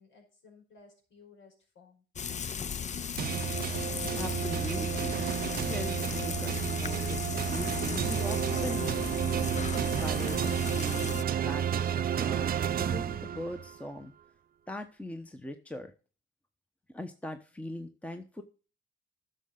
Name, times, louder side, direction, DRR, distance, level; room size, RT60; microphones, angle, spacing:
voice 1, 0.0-2.0, left 4 dB, 70° left, 0 dB, 5.0 m, -57 dB
Frying (food), 2.2-11.2, left 7 dB, 35° left, 0.6 m, -36 dB
sound 1, 3.2-13.8, right 9 dB, 50° right, 0.6 m, -31 dB
voice 2, 4.1-5.2 5.7-9.2 10.0-11.2 11.4-14.1 14.7-15.9 16.9-18.4, left 1 dB, 5° left, 6 dB, 1.0 m, -41 dB
11.5 x 6.6 x 3.8 m, 0.35 s
cardioid pair, 90°, 20 cm